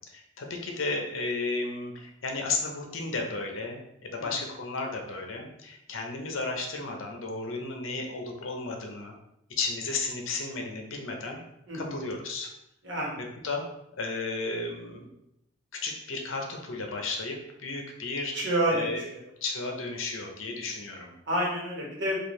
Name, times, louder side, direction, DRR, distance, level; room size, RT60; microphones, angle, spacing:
voice 1, 0.1-9.1 9.6-11.4 11.7-12.5 13.4-13.6 14.0-15.1 15.8-19.1 19.4-21.1, left 3 dB, 70° left, 2 dB, 0.7 m, -33 dB
voice 2, 11.7-12.1 12.8-13.2 18.3-19.2 21.3-22.2, right 1 dB, 55° right, -3 dB, 1.2 m, -29 dB
4.4 x 2.4 x 3.1 m, 0.83 s
head